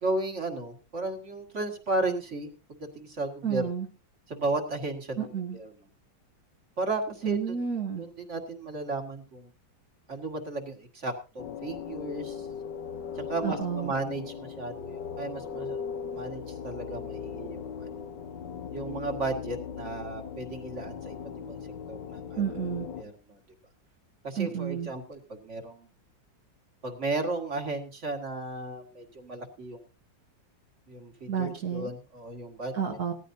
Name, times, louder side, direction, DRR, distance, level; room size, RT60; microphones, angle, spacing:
voice 1, 0.0-3.7 4.3-5.7 6.8-7.6 8.0-9.5 10.1-12.5 13.2-15.8 16.1-17.9 18.7-21.6 21.9-22.4 23.0-23.4 24.2-25.9 26.8-29.8 30.9-33.0, right 2 dB, 40° right, 3 dB, 2.1 m, -34 dB
voice 2, 3.4-3.9 5.2-5.6 7.2-8.0 13.4-13.9 22.4-22.9 24.4-24.9 31.3-31.9 32.7-33.1, right 7 dB, 55° right, 2 dB, 1.8 m, -30 dB
sound 1, 11.4-23.0, left 7 dB, 70° left, 1.5 m, -38 dB
18.5 x 14.0 x 2.7 m, 0.32 s
omnidirectional pair, 2.0 m